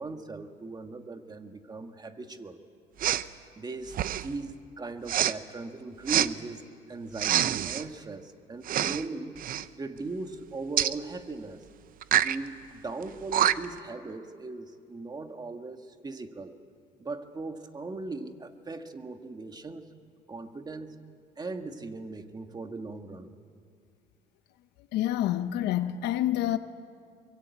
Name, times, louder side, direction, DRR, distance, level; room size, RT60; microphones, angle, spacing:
voice 1, 0.0-2.6 3.5-9.4 9.8-11.6 12.1-16.6 17.0-19.8 20.3-21.0 21.4-23.4, right 3 dB, 25° right, 1.7 m, -39 dB
Respiratory sounds, 3.0-3.3 3.9-4.3 5.1-5.3 6.1-6.3 7.2-7.8 8.6-9.0 9.4-9.7 10.8-11.0 12.0-12.4 13.0-13.1 13.3-13.8, right 11 dB, 55° right, 0.7 m, -26 dB
voice 2, 24.9-26.6, left 13 dB, 85° left, 0.9 m, -27 dB
23.5 x 23.0 x 8.4 m
cardioid pair, 110°, 17 cm